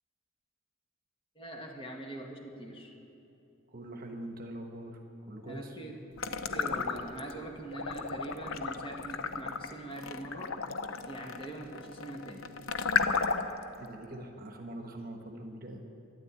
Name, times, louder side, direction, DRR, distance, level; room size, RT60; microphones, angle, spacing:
voice 1, 1.3-2.9 5.4-6.0 6.3-10.5 11.1-12.4, right 1 dB, 25° left, 1 dB, 1.6 m, -43 dB
voice 2, 3.7-5.0 5.3-5.8 13.8-15.9, right 1 dB, 45° right, 4 dB, 1.2 m, -43 dB
sound 1, 6.2-7.3 7.7-13.6, left 5 dB, 75° left, 0.7 m, -33 dB
12.5 x 10.5 x 8.5 m, 2.9 s
head